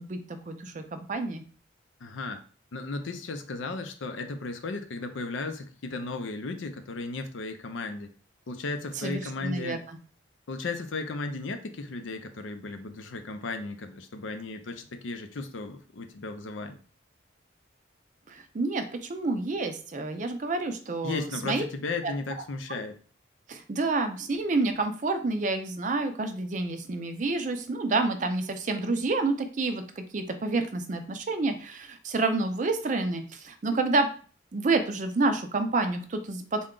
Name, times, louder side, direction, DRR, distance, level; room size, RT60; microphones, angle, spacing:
voice 1, 0.0-1.4 9.0-9.8 18.3-21.6 22.0-22.1 23.5-34.1 34.5-36.7, right 3 dB, 40° right, 7 dB, 0.4 m, -29 dB
voice 2, 2.0-2.4 2.7-8.1 8.5-9.8 10.5-16.8 21.0-23.0, left 3 dB, 75° left, 7 dB, 0.5 m, -35 dB
3.7 x 2.2 x 3.7 m, 0.40 s
head